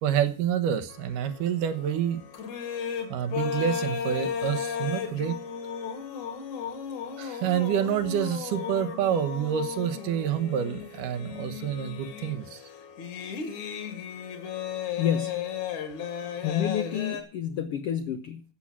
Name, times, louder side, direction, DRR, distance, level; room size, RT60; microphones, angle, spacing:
voice 1, 0.0-2.2 3.1-5.4 7.2-12.6, right 9 dB, 85° right, 2.8 m, -28 dB
sound 1, 0.9-17.2, left 7 dB, 65° left, 3.3 m, -35 dB
voice 2, 15.0-15.5 16.4-18.4, left 9 dB, 80° left, 1.3 m, -29 dB
14.5 x 7.5 x 6.2 m
omnidirectional pair, 3.7 m